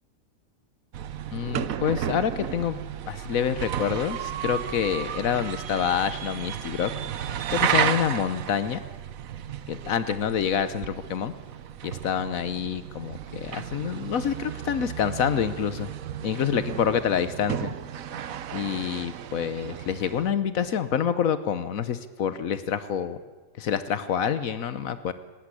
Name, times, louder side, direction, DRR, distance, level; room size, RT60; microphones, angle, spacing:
sound 1, 0.9-20.3, right 9 dB, 80° right, 1.3 m, -33 dB
voice 1, 1.3-6.9 7.5-8.8 9.7-11.3 11.8-15.9 16.2-17.7 18.5-23.2 23.6-25.1, left 8 dB, 80° left, 12 dB, 1.3 m, -27 dB
18.5 x 18.0 x 9.8 m, 1.3 s
omnidirectional pair, 1.4 m